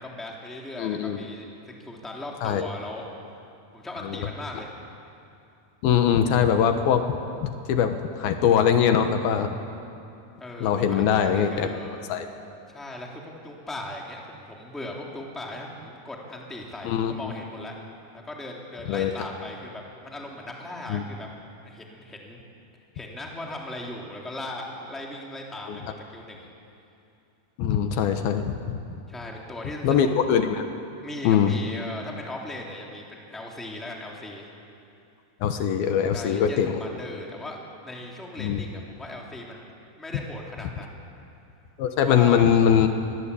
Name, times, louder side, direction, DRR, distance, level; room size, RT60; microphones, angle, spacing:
voice 1, 0.0-1.5 1.8-3.0 3.7-4.7 10.4-12.0 12.7-17.7 18.1-21.3 21.6-22.4 22.9-26.5 29.1-30.1 31.0-34.5 36.1-39.7 40.0-41.0 42.0-42.5, left 1 dB, ahead, -1 dB, 2.6 m, -38 dB
voice 2, 0.8-1.2 2.4-2.7 4.0-4.3 5.8-9.5 10.6-11.7 12.1-12.3 16.8-17.3 18.9-19.1 20.9-21.0 25.7-25.8 27.6-28.8 29.8-30.6 31.2-31.5 35.4-36.8 38.4-38.6 41.8-42.9, left 8 dB, 80° left, 7 dB, 3.0 m, -22 dB
24.5 x 21.5 x 8.5 m, 2.6 s
omnidirectional pair, 4.4 m